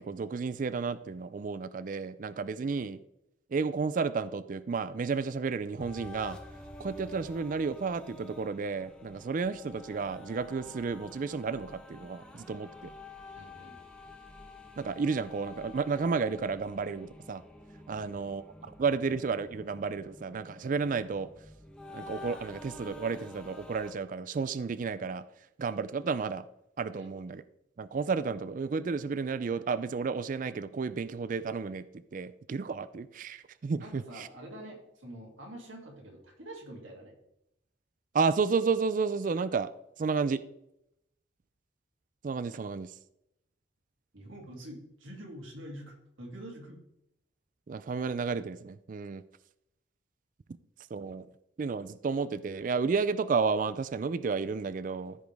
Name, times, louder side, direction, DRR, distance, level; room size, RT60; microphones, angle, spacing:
voice 1, 0.0-3.0 3.5-6.4 6.8-12.9 14.8-17.4 17.9-21.3 21.9-25.2 25.6-26.4 26.8-27.4 27.8-34.3 38.1-39.7 40.0-40.4 42.2-42.9 47.7-49.2 50.9-51.3 51.6-55.2, right 5 dB, 40° right, 15 dB, 0.3 m, -32 dB
sound 1, 5.8-23.9, left 2 dB, 5° left, 0.9 m, -49 dB
voice 2, 13.3-13.8 17.9-18.3 26.9-27.1 33.8-37.1 44.1-46.8, right 1 dB, 85° right, 0 dB, 2.7 m, -46 dB
14.0 x 5.0 x 3.5 m, 0.81 s
head